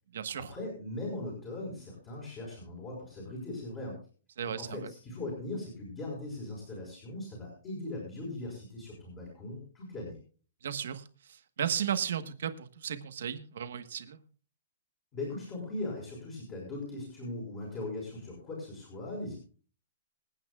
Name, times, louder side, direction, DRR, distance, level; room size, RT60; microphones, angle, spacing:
voice 1, 0.1-4.0 4.4-10.2 15.1-19.4, left 2 dB, 20° left, -3 dB, 5.0 m, -39 dB
voice 2, 4.4-4.8 10.6-11.0 11.6-14.2, right 8 dB, 60° right, 10 dB, 1.3 m, -34 dB
26.5 x 8.9 x 2.4 m, 0.40 s
hypercardioid pair, 175°, 0 cm